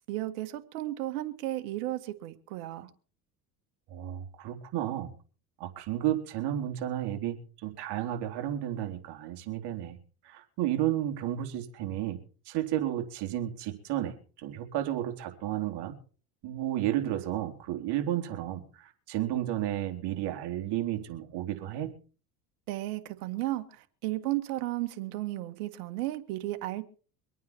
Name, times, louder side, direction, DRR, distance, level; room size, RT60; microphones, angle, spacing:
voice 1, 0.1-2.9 22.7-26.8, right 16 dB, 85° right, 1.9 m, -34 dB
voice 2, 3.9-5.1 5.6-10.0 10.2-12.2 12.5-15.9 16.4-21.9, right 12 dB, 60° right, 3.6 m, -32 dB
24.5 x 9.3 x 4.5 m
supercardioid pair, 100°, 44 cm